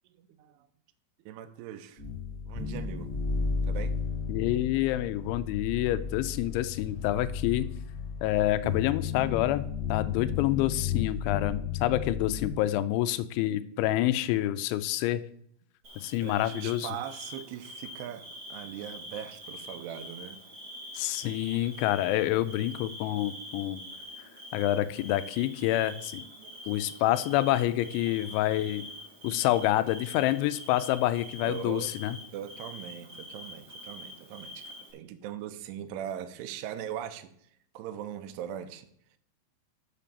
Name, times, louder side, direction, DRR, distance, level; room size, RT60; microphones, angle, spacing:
voice 1, 0.1-0.7 1.2-2.0 2.4-3.2 3.6-4.0 12.3-12.7 16.2-20.4 24.9-25.1 26.2-26.9 28.0-28.4 29.2-29.5 30.1-30.2 31.4-31.9 32.3-37.3 37.7-38.9, right 10 dB, 85° right, 10 dB, 2.5 m, -41 dB
sound 1, 2.0-12.5, left 6 dB, 65° left, 0.6 m, -33 dB
voice 2, 4.3-7.7 8.2-15.2 16.0-16.9 21.0-23.8 24.5-26.2 26.7-28.8 29.2-32.2, left 14 dB, 90° left, 13 dB, 3.0 m, -27 dB
Bird / Cricket, 15.8-34.9, left 1 dB, 55° right, 1.1 m, -45 dB
7.2 x 5.8 x 6.8 m, 0.67 s
omnidirectional pair, 5.3 m